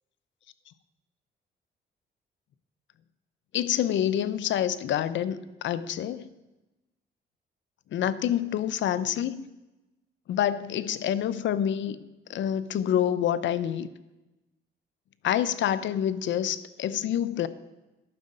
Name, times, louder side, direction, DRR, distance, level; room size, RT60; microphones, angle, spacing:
voice 1, 3.5-6.3 7.9-9.5 10.3-12.0 12.3-13.9 15.2-17.5, left 10 dB, 70° left, 15 dB, 0.7 m, -27 dB
12.0 x 6.5 x 8.7 m, 1.0 s
cardioid pair, 90°, 20 cm